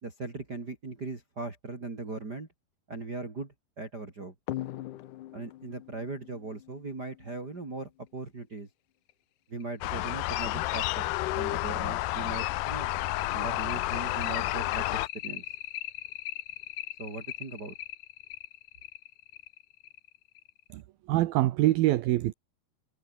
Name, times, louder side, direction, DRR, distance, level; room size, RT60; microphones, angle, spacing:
voice 1, 0.0-2.5 2.9-4.3 5.3-8.7 9.5-12.9 13.3-15.4 17.0-17.8, right 3 dB, 25° right, 3.9 m, -39 dB
sound 1, 4.5-7.6 9.1-9.2 9.6-9.7 10.1-10.2 10.6-20.7, left 15 dB, 70° left, 2.0 m, -41 dB
sound 2, 9.8-15.1, left 18 dB, 85° left, 2.9 m, -30 dB
voice 2, 20.7-22.3, right 16 dB, 75° right, 2.6 m, -25 dB
omnidirectional pair, 4.5 m